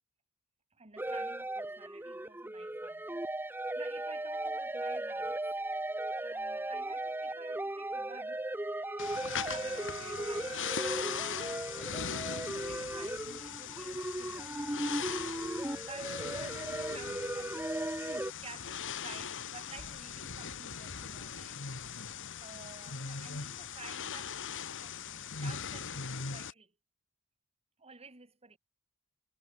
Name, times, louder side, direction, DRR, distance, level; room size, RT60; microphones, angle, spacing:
voice 1, 0.7-3.3 3.8-5.4 6.2-8.7 9.4-11.1 12.2-14.9 15.7-17.7 18.0-21.6 22.4-24.5 24.8-26.7 27.8-28.6, right 4 dB, 30° right, 2.9 m, -53 dB
sound 1, 1.0-18.3, right 1 dB, 10° right, 0.9 m, -37 dB
Wind instrument woodwind instrument, 7.9-12.1, right 6 dB, 80° right, 1.5 m, -50 dB
sound 2, 9.0-26.5, left 7 dB, 60° left, 2.3 m, -40 dB
head